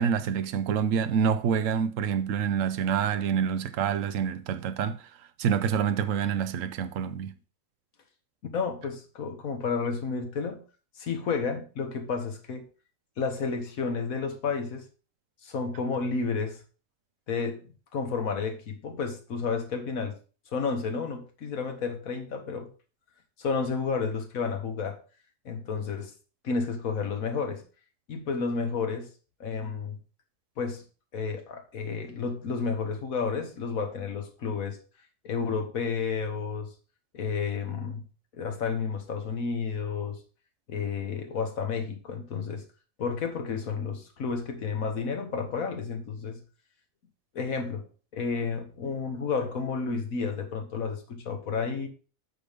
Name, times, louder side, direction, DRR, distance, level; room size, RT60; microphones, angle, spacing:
voice 1, 0.0-5.0 5.4-7.3, right 7 dB, 75° right, 1.1 m, -27 dB
voice 2, 8.5-10.6 11.0-12.6 13.2-14.8 15.4-16.6 17.3-17.6 17.9-20.1 20.5-22.7 23.4-25.0 25.4-26.1 26.4-27.6 28.1-29.1 29.4-30.0 30.6-30.8 31.1-34.8 35.2-36.7 37.1-38.0 38.3-40.2 40.7-42.6 43.0-46.4 47.3-47.9 48.1-51.9, left 5 dB, 85° left, 1.7 m, -31 dB
8.6 x 6.6 x 3.5 m
omnidirectional pair, 1.4 m